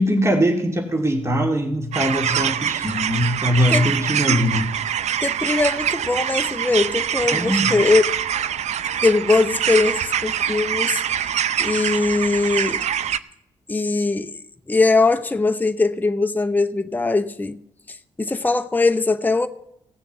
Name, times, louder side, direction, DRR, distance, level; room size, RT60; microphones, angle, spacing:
voice 1, 0.0-4.7 7.3-7.7, equal, 20° right, 2.1 m, -21 dB
sound 1, 1.9-13.2, right 9 dB, 65° right, 0.5 m, -24 dB
voice 2, 5.2-8.1 9.0-11.3 11.6-12.8 13.7-14.4 14.7-17.6 17.9-19.5, left 3 dB, 15° left, 0.8 m, -21 dB
16.5 x 7.0 x 7.2 m
hypercardioid pair, 40°, 13 cm